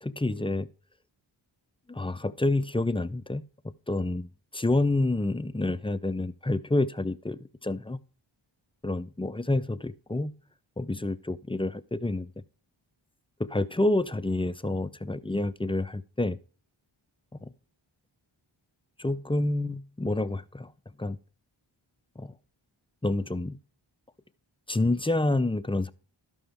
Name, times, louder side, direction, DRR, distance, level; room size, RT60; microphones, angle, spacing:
voice 1, 0.0-0.7 1.9-4.3 4.5-8.0 8.8-10.3 10.8-12.3 13.4-16.4 17.4-17.5 19.0-20.7 21.0-21.2 22.2-22.3 23.0-23.6 24.7-25.9, left 2 dB, 10° left, 0.4 m, -28 dB
13.0 x 5.4 x 3.3 m
wide cardioid pair, 45°, 48 cm